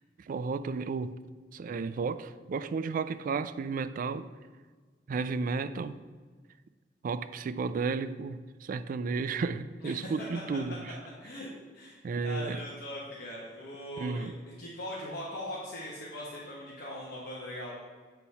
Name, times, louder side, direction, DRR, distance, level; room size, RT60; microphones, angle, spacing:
voice 1, 0.3-1.2 1.5-4.3 5.1-6.0 7.0-10.9 12.0-12.6 14.0-14.3, right 4 dB, 50° right, 0.3 m, -33 dB
voice 2, 9.8-10.1 10.5-10.6 11.2-14.3 14.6-17.8, left 1 dB, 60° left, 1.3 m, -40 dB
8.1 x 4.1 x 5.6 m
head